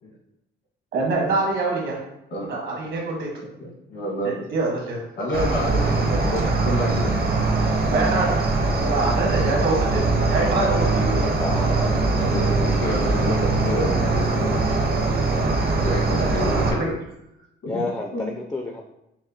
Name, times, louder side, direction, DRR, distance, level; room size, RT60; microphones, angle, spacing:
voice 1, 0.9-2.0 2.5-3.3 4.2-5.0 6.4-6.5 7.9-8.4 8.9-10.0 10.3-11.2 16.4-16.9, right 3 dB, 70° right, -2 dB, 1.4 m, -25 dB
voice 2, 3.6-4.4 5.1-7.2 7.8-7.9 8.8-8.9 12.1-14.7 15.8-16.9 17.6-17.8 18.1-18.3, equal, 70° left, -2 dB, 1.4 m, -28 dB
Cricket, 5.3-16.7, right 3 dB, 50° right, 0.8 m, -22 dB
sound 1, 9.8-10.5 10.8-12.2, right 5 dB, 90° right, 0.7 m, -38 dB
voice 3, 11.1-11.8 17.7-18.8, left 2 dB, 15° left, 2 dB, 0.5 m, -30 dB
6.0 x 2.1 x 2.8 m, 0.85 s
cardioid pair, 90°, 20 cm